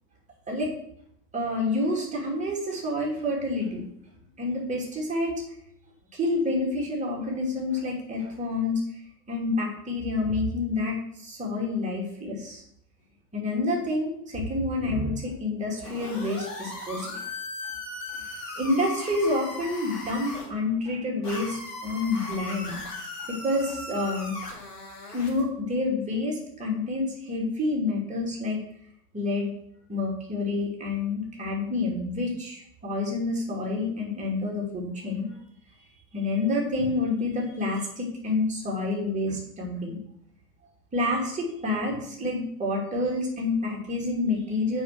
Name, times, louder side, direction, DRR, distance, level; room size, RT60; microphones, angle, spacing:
voice 1, 1.3-3.9 4.4-5.3 6.1-8.8 9.3-12.6 13.3-17.3 18.6-22.8 23.2-24.3 25.1-28.6 29.1-29.5 29.9-35.3 36.1-40.0 40.9-44.8, left 2 dB, 15° right, -2 dB, 3.0 m, -28 dB
sound 1, 15.8-20.5 21.2-25.4, left 2 dB, 70° left, 3.3 m, -38 dB
7.1 x 6.0 x 6.5 m, 0.71 s
figure-of-eight pair, 90°, 49 cm